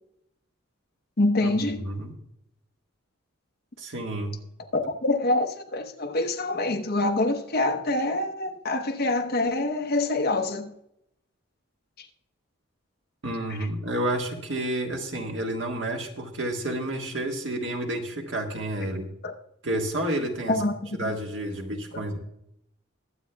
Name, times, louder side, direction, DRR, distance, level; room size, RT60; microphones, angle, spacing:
voice 1, 1.2-1.8 4.7-10.7 19.2-19.3 20.5-21.1, left 2 dB, 50° left, 6 dB, 0.9 m, -25 dB
voice 2, 1.8-2.1 3.8-4.4 13.2-19.1 19.6-20.6 21.0-22.2, right 1 dB, 70° right, 2 dB, 1.6 m, -30 dB
21.5 x 8.2 x 2.3 m, 0.78 s
head